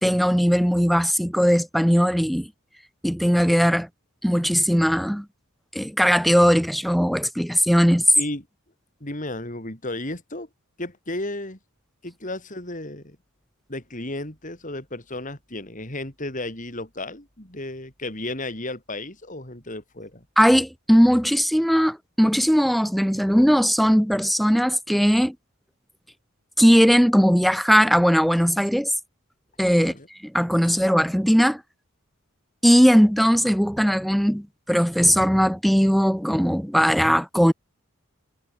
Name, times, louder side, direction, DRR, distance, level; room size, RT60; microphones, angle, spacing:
voice 1, 0.0-2.5 3.0-3.9 4.2-5.3 5.7-8.0 20.4-25.3 26.6-28.9 29.6-29.9 30.2-31.6 32.6-37.5, equal, ahead, 2.4 m, -19 dB
voice 2, 9.0-10.5 10.8-11.6 12.0-13.2 13.7-20.2 29.8-30.1, left 1 dB, 35° left, 4.5 m, -33 dB
head